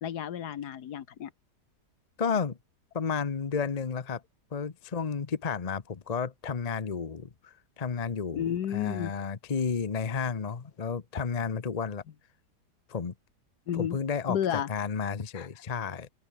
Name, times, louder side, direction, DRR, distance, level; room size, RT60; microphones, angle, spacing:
voice 1, 0.0-1.3 8.3-9.1 13.7-14.0 14.3-14.7 15.3-15.5, left 9 dB, 65° left, 1.6 m, -31 dB
voice 2, 2.2-2.6 2.9-4.2 4.5-12.0 12.9-13.1 13.7-14.4 14.7-16.1, left 6 dB, 30° left, 0.8 m, -32 dB
open air
omnidirectional pair, 1.9 m